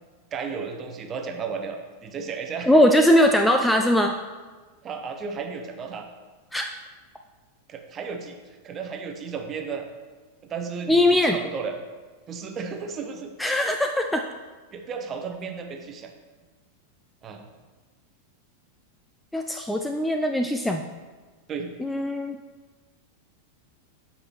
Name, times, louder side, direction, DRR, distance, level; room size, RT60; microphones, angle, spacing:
voice 1, 0.3-2.8 4.8-6.1 7.7-9.9 10.4-11.8 12.3-13.3 14.7-16.1 17.2-17.5 21.5-21.7, right 5 dB, 25° right, 5 dB, 0.8 m, -34 dB
voice 2, 2.7-4.1 6.5-6.6 10.9-11.4 13.4-14.2 19.3-20.8 21.8-22.4, left 1 dB, 5° left, 4 dB, 0.3 m, -20 dB
7.8 x 5.5 x 3.0 m, 1.3 s
figure-of-eight pair, 90°, 0 cm